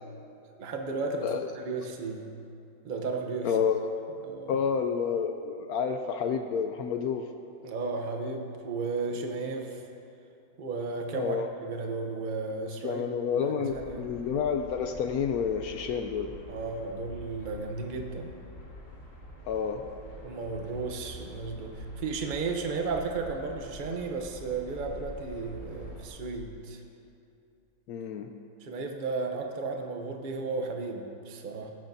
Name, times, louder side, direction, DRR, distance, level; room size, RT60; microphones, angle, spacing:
voice 1, 0.6-2.3 2.8-3.6 4.2-4.6 7.6-9.8 10.6-13.0 13.4-14.1 16.5-18.3 20.2-26.8 28.6-31.7, right 4 dB, 70° right, 3 dB, 0.4 m, -34 dB
voice 2, 3.4-3.9 4.5-7.2 11.1-11.5 12.8-16.3 19.5-19.8 27.9-28.3, left 6 dB, 75° left, 6 dB, 0.8 m, -29 dB
sound 1, 13.6-26.1, equal, 45° left, 1.9 m, -46 dB
16.0 x 12.0 x 2.7 m, 2.6 s
omnidirectional pair, 2.1 m